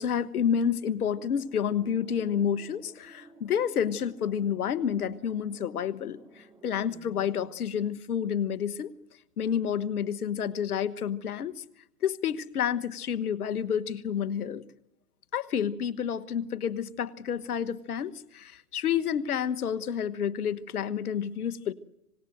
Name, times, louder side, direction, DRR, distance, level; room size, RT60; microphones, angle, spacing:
voice 1, 0.0-8.9 9.4-11.6 12.0-14.6 15.3-21.7, left 8 dB, 70° left, 15 dB, 1.3 m, -29 dB
sound 1, 1.1-7.5, right 2 dB, 5° right, 2.2 m, -54 dB
25.5 x 19.5 x 7.8 m, 0.87 s
hypercardioid pair, 145°, 46 cm